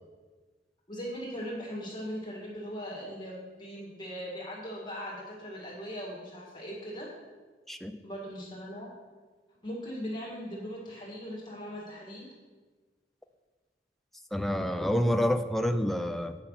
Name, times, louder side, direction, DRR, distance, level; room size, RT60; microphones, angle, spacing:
voice 1, 0.9-7.1 8.0-8.9 9.6-12.3, equal, 25° left, -4 dB, 2.1 m, -39 dB
voice 2, 14.3-16.4, equal, ahead, 7 dB, 0.4 m, -28 dB
8.8 x 5.8 x 5.7 m, 1.4 s
head